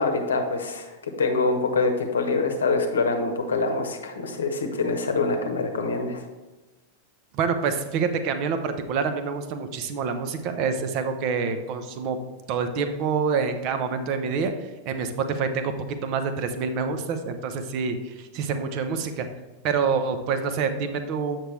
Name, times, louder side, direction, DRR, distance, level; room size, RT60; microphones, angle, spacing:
voice 1, 0.0-6.2, left 3 dB, 70° left, 5 dB, 0.9 m, -25 dB
voice 2, 7.3-12.2 12.5-14.5 14.8-19.3 19.6-21.4, right 5 dB, 40° right, 8 dB, 0.7 m, -27 dB
7.7 x 5.9 x 3.3 m, 1.1 s
figure-of-eight pair, 90°, 0 cm